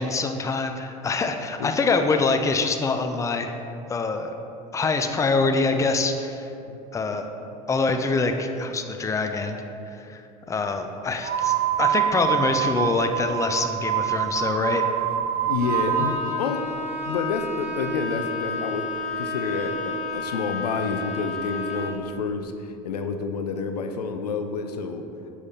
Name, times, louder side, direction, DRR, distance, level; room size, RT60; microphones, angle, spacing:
voice 1, 0.0-3.5 3.9-4.3 4.7-6.5 6.9-7.3 7.7-9.6 10.0-10.2 10.5-14.8, left 3 dB, 15° left, 6 dB, 0.4 m, -25 dB
voice 2, 6.7-7.2 15.5-16.7 17.1-25.1, left 4 dB, 90° left, 6 dB, 0.4 m, -29 dB
sound 1, 11.2-16.2, right 11 dB, 50° right, 0.5 m, -25 dB
Bowed string instrument, 15.6-22.1, left 3 dB, 40° left, 1.0 m, -31 dB
7.0 x 4.7 x 2.8 m, 2.8 s
hypercardioid pair, 80°, 20 cm